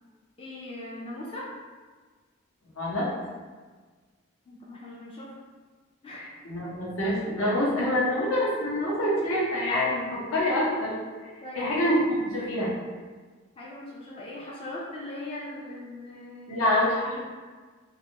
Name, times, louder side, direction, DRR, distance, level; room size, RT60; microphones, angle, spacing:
voice 1, 0.4-1.5 4.5-5.4 6.0-6.3 11.4-12.1 13.6-16.7, left 1 dB, 25° left, -5 dB, 0.3 m, -40 dB
voice 2, 6.4-10.9 11.2-11.3 11.5-12.7 16.5-17.2, left 1 dB, 75° left, -6 dB, 0.8 m, -26 dB
2.6 x 2.3 x 2.8 m, 1.5 s
head